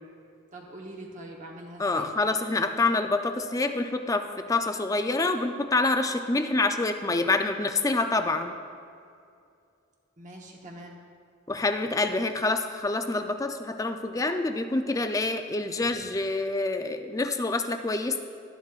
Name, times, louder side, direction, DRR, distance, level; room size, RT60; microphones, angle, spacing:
voice 1, 0.5-2.1 10.2-11.0 15.8-15.9, right 1 dB, 40° right, -1 dB, 1.0 m, -43 dB
voice 2, 1.8-8.5 11.5-18.2, left 2 dB, 15° left, 7 dB, 0.4 m, -27 dB
12.5 x 11.0 x 2.4 m, 2.4 s
head